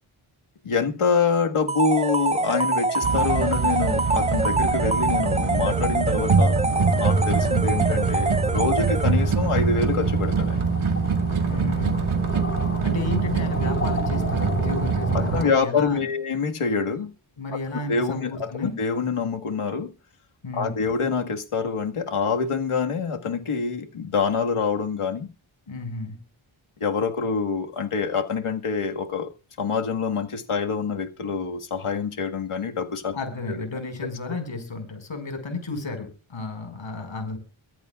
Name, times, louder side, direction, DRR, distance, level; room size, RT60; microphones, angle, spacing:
voice 1, 0.6-6.6 7.0-10.6 15.1-17.1 17.5-17.6 17.9-19.9 20.5-25.3 26.8-29.3 29.6-33.2 33.5-33.6, left 5 dB, 90° left, 1.9 m, -26 dB
sound 1, 1.7-9.4, right 2 dB, 15° right, 0.6 m, -25 dB
sound 2, 3.0-15.4, right 4 dB, 80° right, 1.8 m, -24 dB
sound 3, 6.7-15.6, left 2 dB, 25° left, 4.6 m, -35 dB
voice 2, 11.4-12.2 12.8-16.0 17.4-18.8 20.4-20.8 25.7-26.2 33.1-37.4, left 3 dB, 65° left, 5.8 m, -33 dB
24.0 x 10.5 x 2.5 m
wide cardioid pair, 125°, 49 cm